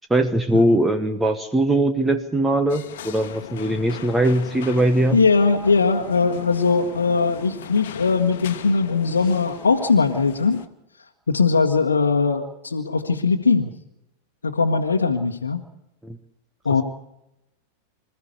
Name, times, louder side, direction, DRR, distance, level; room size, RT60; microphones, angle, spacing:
voice 1, 0.1-5.2 16.0-16.2, right 1 dB, 10° right, 9 dB, 1.2 m, -20 dB
sound 1, 2.7-10.7, left 9 dB, 55° left, 1.3 m, -38 dB
voice 2, 5.1-10.6 11.3-13.7 14.4-15.6 16.6-16.8, left 4 dB, 75° left, 2 dB, 1.3 m, -20 dB
26.0 x 14.5 x 8.1 m, 0.90 s
figure-of-eight pair, 90°, 0 cm